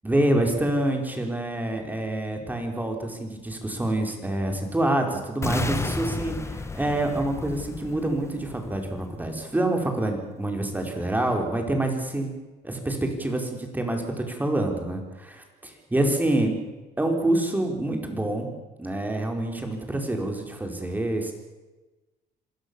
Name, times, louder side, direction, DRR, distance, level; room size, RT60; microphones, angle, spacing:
voice 1, 0.0-12.3 12.6-16.6 17.0-18.5 18.8-21.3, right 1 dB, 10° right, 3 dB, 5.2 m, -27 dB
sound 1, 5.4-9.4, left 3 dB, 15° left, 1.7 m, -32 dB
26.5 x 17.0 x 7.3 m, 1.2 s
cardioid pair, 110°, 17 cm